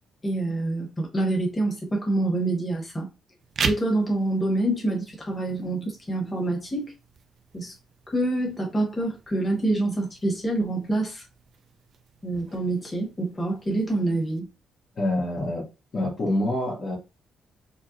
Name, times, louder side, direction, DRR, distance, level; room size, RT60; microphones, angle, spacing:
voice 1, 0.2-3.1 3.6-6.9 7.5-7.7 8.1-11.2 12.2-14.5, right 2 dB, 20° left, 1.3 m, -26 dB
sound 1, 3.4-14.4, right 6 dB, 55° right, 0.4 m, -39 dB
voice 2, 15.0-15.6 15.9-17.0, left 1 dB, 45° left, 1.0 m, -26 dB
4.3 x 2.0 x 2.6 m
cardioid pair, 90°, 0 cm